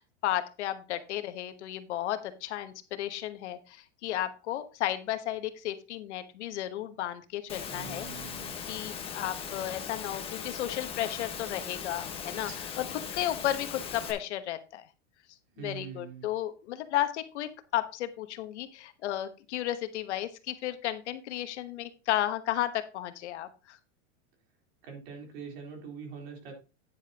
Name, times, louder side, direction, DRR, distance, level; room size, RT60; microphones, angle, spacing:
voice 1, 0.0-8.1 8.7-14.8 15.6-23.8, left 13 dB, 70° left, 10 dB, 1.2 m, -33 dB
Engine / Mechanisms, 7.5-14.1, left 7 dB, 15° left, 1.1 m, -39 dB
voice 2, 7.7-8.6 12.5-12.6 15.5-16.3 24.8-26.5, right 6 dB, 55° right, 1 dB, 3.9 m, -43 dB
9.7 x 8.4 x 2.9 m, 0.31 s
supercardioid pair, 165°, 35 cm